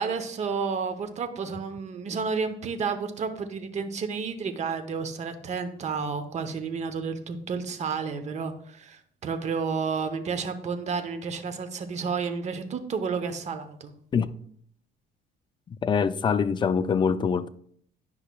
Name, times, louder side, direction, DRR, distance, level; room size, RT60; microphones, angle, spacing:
voice 1, 0.0-13.9, right 5 dB, 40° right, 0.8 m, -31 dB
voice 2, 15.7-17.5, left 6 dB, 30° left, 0.4 m, -24 dB
10.0 x 5.6 x 2.3 m
cardioid pair, 110°, 17 cm